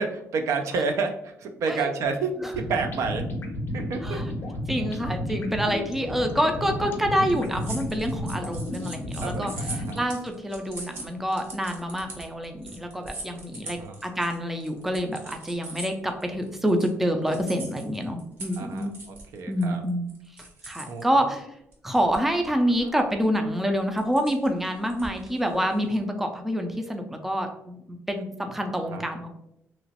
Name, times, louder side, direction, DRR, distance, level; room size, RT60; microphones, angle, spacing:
voice 1, 0.0-3.3 3.7-4.2 9.2-10.0 13.6-14.0 18.6-19.8 20.9-21.0 22.8-22.9 28.9-29.0, right 4 dB, 75° right, 6 dB, 0.4 m, -30 dB
sound 1, 2.4-10.1, left 1 dB, 50° left, 0.5 m, -32 dB
voice 2, 4.7-9.5 9.9-18.9 19.5-20.1 20.6-21.4 21.8-29.3, equal, 5° right, 5 dB, 0.3 m, -27 dB
sound 2, 7.3-16.9 17.3-21.0 21.7-22.4 22.8-23.0 23.8-26.0, right 2 dB, 50° right, 0.9 m, -41 dB
3.0 x 2.9 x 2.8 m, 0.79 s
cardioid pair, 140°, 5 cm